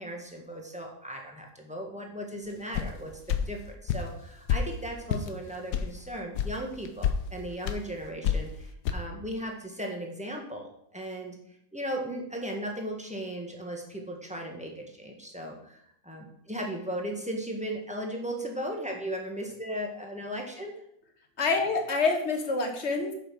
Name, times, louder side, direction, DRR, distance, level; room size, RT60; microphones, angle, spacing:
voice 1, 0.0-3.1 3.4-11.4 11.7-20.8, equal, 5° right, 0 dB, 1.4 m, -37 dB
sound 1, 2.7-2.9 3.3-3.4 3.9-4.1 4.5-4.6 5.1-5.3 5.7-5.9 6.4-6.5 6.9-7.2 7.7-7.8 8.2-8.5 8.9-9.0, left 8 dB, 75° left, 1.3 m, -27 dB
voice 2, 21.4-23.1, left 4 dB, 45° left, 4 dB, 1.6 m, -27 dB
8.5 x 5.6 x 5.8 m, 0.74 s
omnidirectional pair, 1.8 m